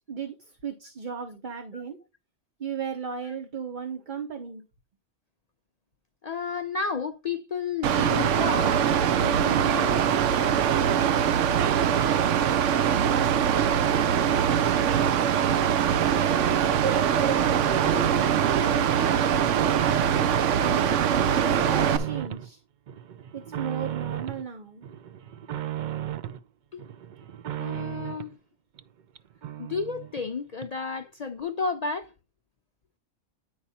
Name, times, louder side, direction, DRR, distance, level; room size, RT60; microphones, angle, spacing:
voice 1, 0.1-2.0 2.6-4.6 17.6-20.0 20.6-22.6 23.3-24.8, right 6 dB, 45° right, 1.0 m, -36 dB
voice 2, 6.2-10.1 26.7-26.8 27.6-28.4 29.6-32.1, left 4 dB, 55° left, 0.4 m, -32 dB
Mechanical fan, 7.8-22.0, right 8 dB, 85° right, 1.0 m, -23 dB
sound 1, 17.0-18.6 18.9-20.5 20.9-22.5 22.9-24.4 24.8-26.4 26.8-28.3 28.8-28.9 29.1-29.2 29.4-30.3 30.6-30.7, right 12 dB, 60° right, 0.5 m, -35 dB
9.8 x 4.8 x 4.1 m
omnidirectional pair, 1.2 m